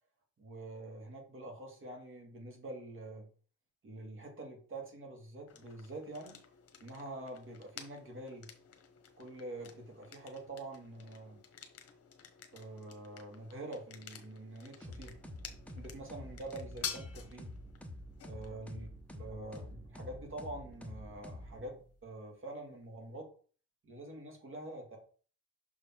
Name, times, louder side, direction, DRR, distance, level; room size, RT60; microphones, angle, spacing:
voice 1, 0.4-3.3 3.8-6.4 6.8-8.5 9.2-11.4 12.5-15.1 15.8-17.6 18.3-18.9 19.2-23.3 23.8-25.0, right 2 dB, 45° right, 1 dB, 2.3 m, -46 dB
sound 1, 5.5-23.2, left 7 dB, 50° left, 1.2 m, -51 dB
sound 2, 14.8-22.0, left 1 dB, 5° left, 0.8 m, -48 dB
6.3 x 3.7 x 4.5 m, 0.42 s
cardioid pair, 90°, 30 cm